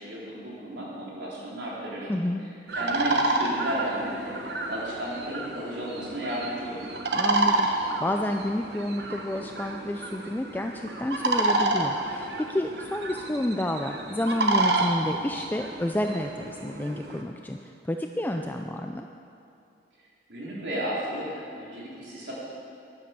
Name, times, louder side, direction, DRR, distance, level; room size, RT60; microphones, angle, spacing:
voice 1, 0.0-2.1 2.7-4.4 4.7-6.9 20.3-22.3, right 1 dB, 85° right, -6 dB, 4.0 m, -33 dB
voice 2, 2.1-2.5 7.1-19.1, left 1 dB, 10° left, 4 dB, 0.4 m, -30 dB
sound 1, 2.7-17.2, right 2 dB, 65° right, 1.2 m, -29 dB
12.0 x 11.0 x 6.8 m, 2.6 s
head